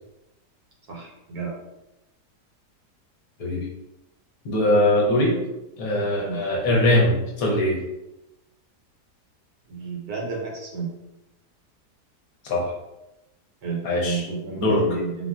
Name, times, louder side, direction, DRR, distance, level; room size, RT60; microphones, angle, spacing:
voice 1, 0.9-1.6 6.2-6.4 9.7-10.9 13.6-15.3, right 4 dB, 70° right, -2 dB, 1.2 m, -31 dB
voice 2, 4.4-5.4 5.8-7.8 12.5-12.6 13.8-14.2 14.6-14.8, left 1 dB, 65° left, -3 dB, 1.0 m, -21 dB
3.7 x 2.1 x 2.3 m, 0.94 s
omnidirectional pair, 1.8 m